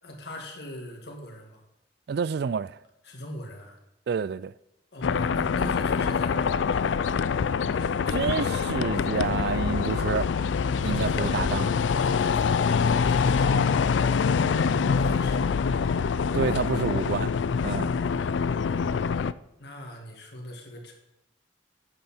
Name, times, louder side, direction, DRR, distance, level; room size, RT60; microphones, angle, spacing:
voice 1, 0.0-1.6 3.0-3.8 4.9-6.5 10.8-11.4 12.0-13.8 14.5-15.6 17.8-18.4 19.6-20.9, equal, 60° left, 2.2 m, -40 dB
voice 2, 2.1-2.8 4.1-4.5 8.1-10.3 10.8-11.8 16.3-17.3 17.6-17.9, right 6 dB, 60° right, 0.3 m, -28 dB
sound 1, 5.0-19.3, left 5 dB, 80° left, 0.4 m, -25 dB
12.0 x 9.0 x 4.4 m
head